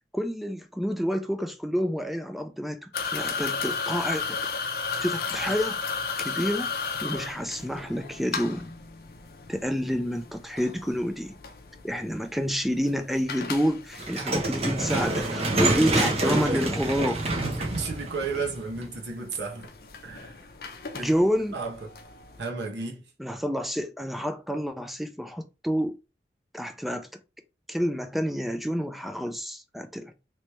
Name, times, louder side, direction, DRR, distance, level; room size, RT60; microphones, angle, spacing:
voice 1, 0.1-4.4 5.0-5.8 6.2-6.7 7.0-8.7 9.5-11.4 11.8-17.2 20.9-21.6 23.2-25.9 26.5-27.1 27.7-30.1, equal, ahead, 0.3 m, -28 dB
sound 1, 2.9-22.4, left 5 dB, 55° left, 0.5 m, -36 dB
sound 2, 14.0-19.1, right 2 dB, 35° right, 0.8 m, -27 dB
voice 2, 15.6-16.7 17.4-19.7 20.0-20.3 21.0-21.1 21.5-21.9 22.4-23.0, right 3 dB, 80° right, 1.0 m, -33 dB
3.1 x 3.0 x 3.0 m
head